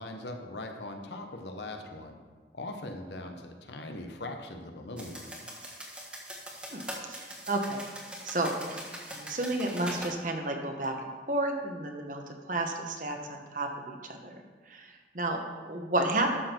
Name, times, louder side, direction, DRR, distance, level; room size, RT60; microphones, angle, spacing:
voice 1, 0.0-2.2 2.5-5.3, left 2 dB, 75° left, 4 dB, 1.1 m, -40 dB
sound 1, 5.0-10.1, equal, 5° right, 1.4 m, -42 dB
voice 2, 6.7-7.8 8.2-8.8 9.1-16.4, right 2 dB, 45° right, 3 dB, 1.1 m, -32 dB
12.5 x 6.4 x 4.5 m, 1.4 s
head